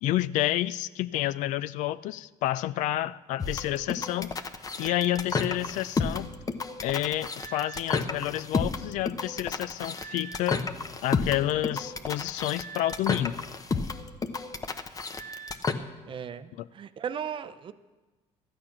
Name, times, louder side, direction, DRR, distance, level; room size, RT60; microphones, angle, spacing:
voice 1, 0.0-4.3 4.8-6.3 6.8-10.7 11.0-13.4 16.6-16.7, left 14 dB, 70° left, 17 dB, 0.4 m, -29 dB
sound 1, 3.4-15.7, left 4 dB, 25° left, 0.8 m, -32 dB
voice 2, 16.1-17.7, right 8 dB, 40° right, 12 dB, 0.6 m, -36 dB
13.0 x 8.8 x 5.9 m, 1.2 s
cardioid pair, 100°, 13 cm